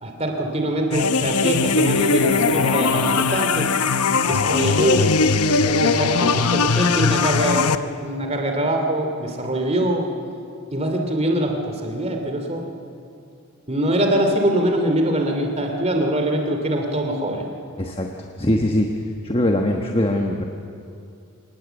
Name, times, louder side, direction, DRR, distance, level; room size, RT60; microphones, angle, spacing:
voice 1, 0.0-3.7 4.2-5.1 5.8-10.1 10.7-12.7 13.7-17.4, right 1 dB, 30° right, 3 dB, 2.7 m, -23 dB
sound 1, 0.9-7.7, left 4 dB, 90° left, 0.9 m, -20 dB
voice 2, 17.8-18.1 18.4-18.9 19.2-20.5, left 1 dB, 25° left, 2 dB, 1.2 m, -21 dB
26.5 x 19.0 x 8.1 m, 2.5 s
head